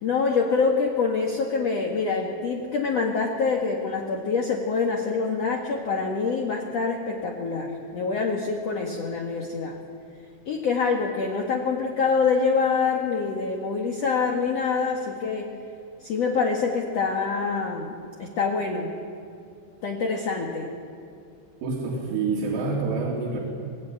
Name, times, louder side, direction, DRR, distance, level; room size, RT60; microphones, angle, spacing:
voice 1, 0.0-9.8 10.4-15.5 16.0-17.9 18.2-18.9 19.8-20.7, left 4 dB, 60° left, 0 dB, 1.7 m, -25 dB
voice 2, 21.6-23.4, right 4 dB, 80° right, -3 dB, 5.3 m, -27 dB
24.0 x 19.0 x 9.5 m, 2.4 s
omnidirectional pair, 5.6 m